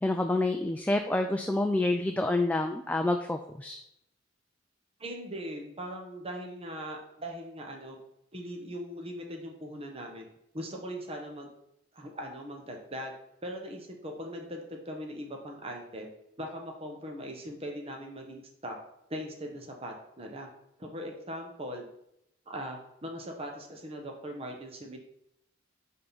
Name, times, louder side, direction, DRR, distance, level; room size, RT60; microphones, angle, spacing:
voice 1, 0.0-3.8, left 2 dB, 5° left, 4 dB, 0.4 m, -28 dB
voice 2, 5.0-8.0 8.3-10.2 10.5-11.5 11.9-13.1 13.4-16.1 16.4-18.8 19.1-20.5 20.8-21.8 22.5-25.0, equal, 30° right, 1 dB, 1.1 m, -40 dB
10.0 x 3.8 x 4.0 m, 0.78 s
head